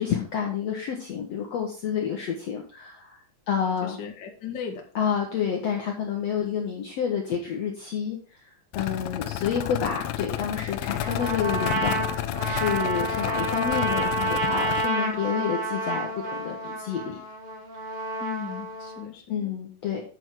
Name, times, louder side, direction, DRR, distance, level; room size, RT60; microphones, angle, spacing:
voice 1, 0.0-3.2 3.5-4.0 5.0-8.2 8.8-17.2 19.3-20.0, left 7 dB, 60° left, 1 dB, 1.9 m, -29 dB
voice 2, 3.5-4.9 18.2-19.6, left 7 dB, 40° left, 2 dB, 1.7 m, -37 dB
sound 1, 8.7-14.9, left 14 dB, 85° left, 2.4 m, -31 dB
Trumpet, 11.0-19.0, right 2 dB, 70° right, 4.3 m, -29 dB
8.8 x 6.0 x 4.6 m, 0.40 s
omnidirectional pair, 4.0 m